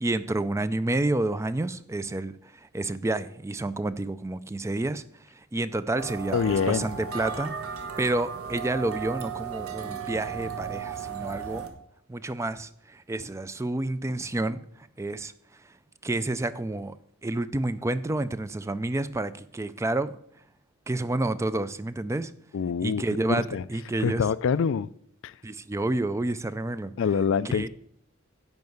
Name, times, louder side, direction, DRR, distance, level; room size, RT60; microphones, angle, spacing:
voice 1, 0.0-5.0 5.3-11.7 12.1-15.3 16.0-17.0 17.2-20.2 20.9-22.3 22.8-24.2 25.4-26.9 27.5-27.7, right 2 dB, 15° right, 0.3 m, -29 dB
sound 1, 6.0-11.7, right 7 dB, 75° right, 1.3 m, -35 dB
voice 2, 6.3-6.9 22.5-23.6 24.0-24.9 25.2-25.4 27.0-27.7, left 6 dB, 60° left, 0.4 m, -26 dB
10.5 x 4.7 x 7.9 m
head